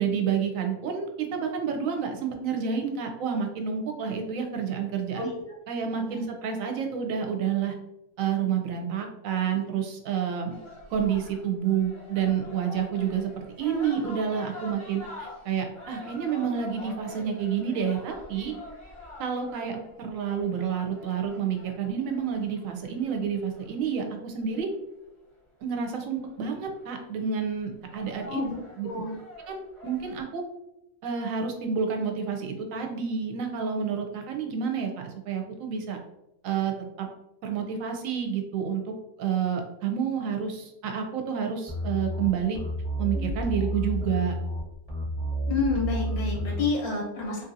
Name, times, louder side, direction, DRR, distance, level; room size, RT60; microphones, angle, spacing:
voice 1, 0.0-5.3 5.7-7.8 8.2-10.5 10.9-18.5 19.2-24.7 25.6-28.4 28.8-28.9 29.5-30.4 31.0-36.0 36.4-37.1 37.4-42.6 43.0-44.3, right 7 dB, 70° right, 3 dB, 0.9 m, -29 dB
sound 1, 10.5-24.7 26.2-26.4 26.7-27.2 27.7-30.2, left 1 dB, 25° left, 0.7 m, -46 dB
voice 2, 28.2-28.5 28.8-29.1 45.5-47.4, left 3 dB, 90° left, -2 dB, 1.5 m, -29 dB
sound 2, 41.7-46.7, equal, 10° right, 0.8 m, -30 dB
2.8 x 2.6 x 2.6 m, 0.88 s
omnidirectional pair, 1.5 m